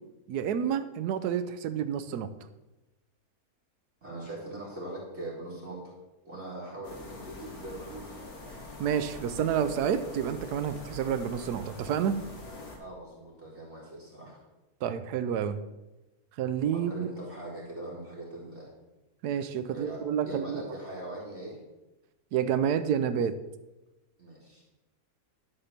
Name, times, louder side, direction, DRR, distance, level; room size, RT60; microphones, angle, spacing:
voice 1, 0.3-2.3 8.8-12.2 14.8-15.6 16.4-17.1 19.2-20.6 22.3-23.4, right 8 dB, 85° right, 11 dB, 1.2 m, -29 dB
voice 2, 4.0-5.9 6.3-8.2 12.8-14.4 16.7-18.7 19.7-21.6 24.2-24.6, right 1 dB, 45° right, -6 dB, 2.2 m, -41 dB
sound 1, 6.8-12.8, left 2 dB, 65° left, 2.0 m, -44 dB
11.0 x 3.8 x 6.6 m, 1.0 s
omnidirectional pair, 1.7 m